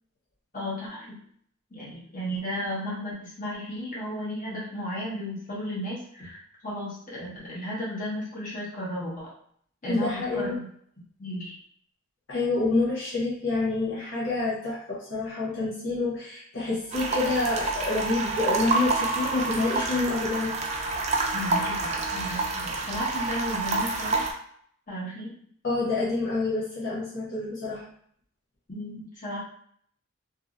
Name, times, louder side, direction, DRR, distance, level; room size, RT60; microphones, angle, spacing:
voice 1, 0.5-1.2 1.7-9.3 9.8-10.7 11.2-11.5 21.3-24.2 24.9-25.3 28.7-29.4, equal, 35° left, -7 dB, 1.1 m, -34 dB
voice 2, 9.9-10.6 12.3-20.5 25.6-27.8, left 3 dB, 60° left, -8 dB, 0.8 m, -27 dB
sound 1, 16.9-24.3, right 3 dB, 30° right, 0.3 m, -28 dB
2.8 x 2.7 x 2.5 m, 0.64 s
head